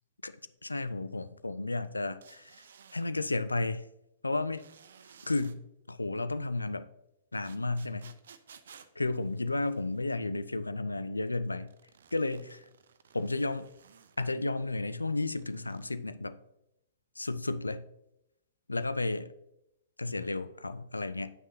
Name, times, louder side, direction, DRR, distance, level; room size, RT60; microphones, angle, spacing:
voice 1, 0.2-2.6 2.9-3.8 4.2-4.6 5.3-5.6 5.9-6.9 7.3-8.1 9.0-11.7 12.1-12.6 13.1-13.7 14.2-16.4 17.2-17.9 18.7-19.3 20.0-21.3, left 2 dB, 80° left, 0.4 m, -33 dB
sound 1, 2.2-3.1 4.5-5.6 7.4-10.0 11.7-14.2 15.2-15.9, right 7 dB, 60° right, 0.5 m, -57 dB
9.0 x 6.2 x 2.8 m
figure-of-eight pair, 110°, 0 cm